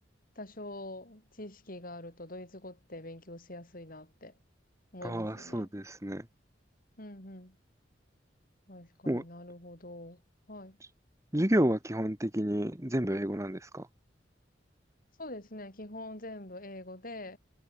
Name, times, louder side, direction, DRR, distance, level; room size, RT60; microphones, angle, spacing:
voice 1, 0.4-4.3 4.9-5.7 7.0-7.6 8.7-10.2 10.5-10.8 15.2-17.4, left 1 dB, 50° left, 7.6 m, -45 dB
voice 2, 5.0-6.2 9.1-9.2 11.3-13.9, right 1 dB, 15° right, 1.7 m, -30 dB
head